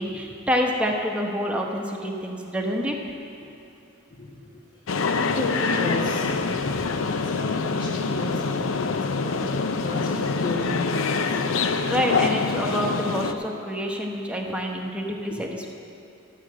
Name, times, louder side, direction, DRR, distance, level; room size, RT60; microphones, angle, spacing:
voice 1, 0.0-2.9 11.9-15.7, equal, 5° right, 0 dB, 1.0 m, -27 dB
sound 1, 4.9-13.3, left 4 dB, 85° left, 0.6 m, -25 dB
voice 2, 4.9-6.9 7.2-11.4, left 1 dB, 45° left, -7 dB, 1.4 m, -33 dB
13.0 x 6.5 x 7.6 m, 2.7 s
head